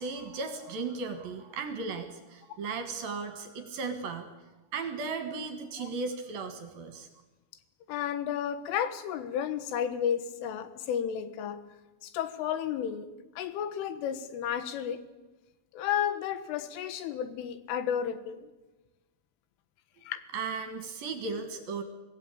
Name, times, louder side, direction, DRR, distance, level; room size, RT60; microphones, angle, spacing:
voice 1, 0.0-4.3 4.7-7.1 20.3-21.8, right 4 dB, 60° right, 7 dB, 3.0 m, -36 dB
voice 2, 7.9-11.6 12.0-13.1 13.4-15.0 15.7-18.5 20.0-20.2, left 9 dB, 90° left, 11 dB, 3.9 m, -32 dB
24.5 x 16.5 x 8.7 m, 1.1 s
omnidirectional pair, 5.6 m